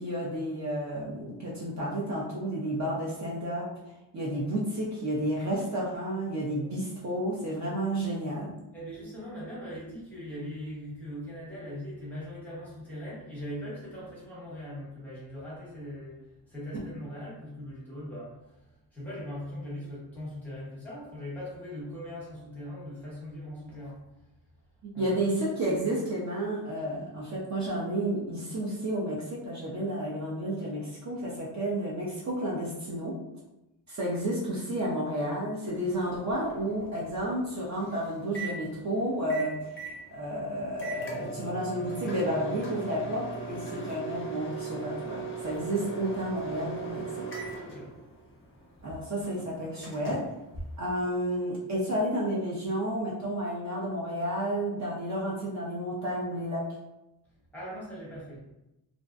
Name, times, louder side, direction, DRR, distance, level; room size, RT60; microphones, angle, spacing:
voice 1, 0.0-3.7 4.1-8.5 24.8-33.2 33.9-39.8 40.1-47.3 48.8-50.2 50.8-56.7, right 1 dB, 45° right, -6 dB, 0.5 m, -31 dB
voice 2, 8.7-16.2 16.5-18.3 18.9-24.0 24.9-25.2 47.6-47.9 57.5-58.4, equal, 5° left, -9 dB, 0.8 m, -40 dB
Microwave oven, 35.7-51.4, right 4 dB, 30° left, 0.5 m, -40 dB
2.5 x 2.1 x 2.4 m, 0.92 s
wide cardioid pair, 165°, 39 cm